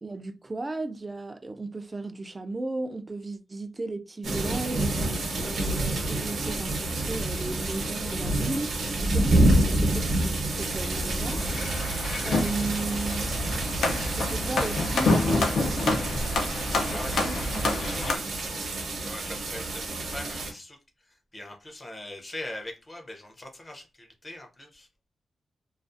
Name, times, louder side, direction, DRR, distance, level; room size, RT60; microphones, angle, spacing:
voice 1, 0.0-4.9 5.4-11.4 12.2-13.3 14.2-16.2 16.9-17.8, right 2 dB, 20° right, 0.3 m, -35 dB
sound 1, 4.2-20.5, right 1 dB, 65° right, 0.8 m, -28 dB
sound 2, 11.2-18.2, left 2 dB, 75° left, 0.6 m, -28 dB
voice 2, 16.9-17.5 17.7-20.8 21.1-24.9, left 1 dB, 20° left, 0.6 m, -42 dB
2.3 x 2.3 x 2.5 m
wide cardioid pair, 135°, 0 cm